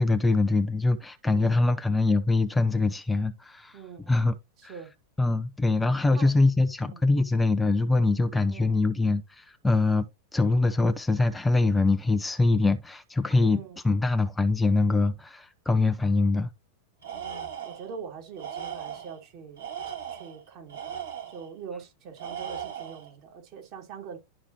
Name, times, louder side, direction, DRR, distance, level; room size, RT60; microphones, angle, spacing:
voice 1, 0.0-3.8 4.1-4.4 4.6-4.7 5.2-10.1 10.3-16.5, left 3 dB, 5° left, 0.5 m, -23 dB
voice 2, 1.3-1.6 3.7-4.2 4.6-4.9 6.1-6.3 6.8-7.0 8.5-8.8 13.5-13.8 17.1-19.6 20.1-21.0 21.3-24.2, right 6 dB, 40° right, 2.6 m, -43 dB
Tools, 17.0-17.9 18.4-19.2 19.6-21.5 22.2-23.1, right 9 dB, 65° right, 4.3 m, -38 dB
11.5 x 4.9 x 2.9 m
figure-of-eight pair, 90°, 0 cm